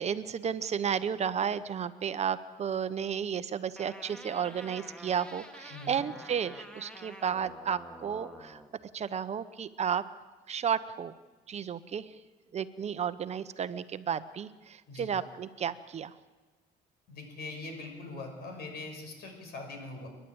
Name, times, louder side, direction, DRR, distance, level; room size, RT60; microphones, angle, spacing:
voice 1, 0.0-8.6 8.9-10.0 10.5-11.1 11.5-12.2 12.5-16.1, right 8 dB, 40° right, 12 dB, 0.8 m, -33 dB
sound 1, 3.8-8.7, equal, 5° left, 2.0 m, -48 dB
voice 2, 5.7-6.0 14.9-15.1 17.1-20.1, left 2 dB, 70° left, 4 dB, 6.1 m, -42 dB
29.0 x 11.0 x 8.7 m, 1.3 s
cardioid pair, 110°, 17 cm